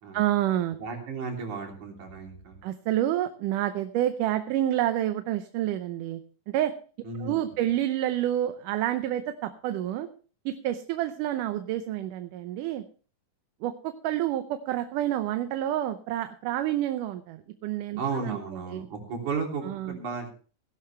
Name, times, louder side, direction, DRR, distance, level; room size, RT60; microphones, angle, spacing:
voice 1, 0.1-0.8 2.6-6.2 6.5-6.7 7.2-10.1 10.5-12.8 13.6-18.4 18.7-18.9 19.6-20.0, right 12 dB, 75° right, 9 dB, 2.3 m, -28 dB
voice 2, 0.8-2.6 7.0-7.4 18.0-20.3, right 4 dB, 60° right, 1 dB, 4.5 m, -34 dB
17.5 x 11.5 x 3.3 m, 0.39 s
omnidirectional pair, 3.9 m